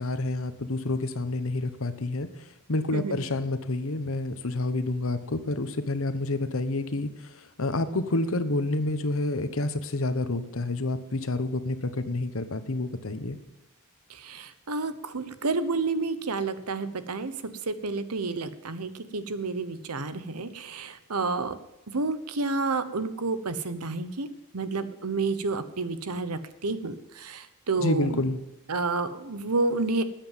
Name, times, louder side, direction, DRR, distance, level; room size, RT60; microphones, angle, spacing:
voice 1, 0.0-13.4 27.8-28.4, left 2 dB, 65° left, 11 dB, 1.2 m, -29 dB
voice 2, 14.1-21.6 21.9-24.3 24.5-28.3 28.7-30.0, right 3 dB, 90° right, 13 dB, 1.1 m, -30 dB
13.0 x 8.8 x 7.4 m, 0.94 s
head